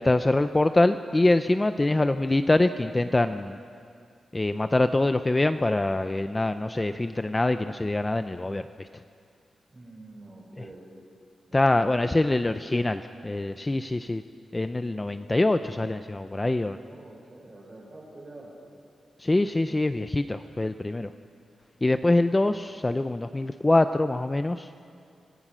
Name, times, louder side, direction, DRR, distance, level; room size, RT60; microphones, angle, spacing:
voice 1, 0.0-3.6 4.3-8.9 11.5-14.2 14.5-16.8 19.2-21.1 21.8-24.7, left 2 dB, 15° left, 9 dB, 0.4 m, -24 dB
voice 2, 9.7-10.9 11.5-12.8 16.7-18.5, right 2 dB, 30° right, -3 dB, 6.0 m, -47 dB
26.5 x 18.0 x 6.2 m, 2.3 s
wide cardioid pair, 175°, 0 cm